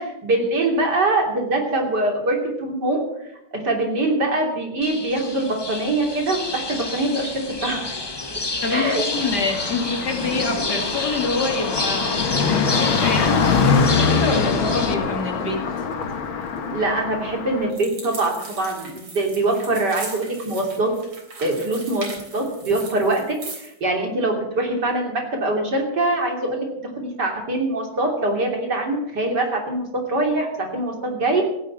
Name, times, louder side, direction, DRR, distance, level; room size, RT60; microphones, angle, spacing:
voice 1, 0.0-3.3 3.5-7.9 8.7-9.3 16.7-20.9 21.4-22.1 22.3-31.4, right 2 dB, 55° right, 1 dB, 3.6 m, -23 dB
sound 1, 4.8-14.9, left 2 dB, 25° left, 0.5 m, -29 dB
voice 2, 8.6-12.1 12.4-15.6, left 3 dB, 50° left, 3 dB, 2.9 m, -26 dB
Car passing by, 9.1-17.7, left 5 dB, 75° left, 2.2 m, -24 dB
sound 2, 17.7-23.7, right 3 dB, 75° right, 4.3 m, -38 dB
15.5 x 9.9 x 7.4 m, 0.84 s
omnidirectional pair, 2.3 m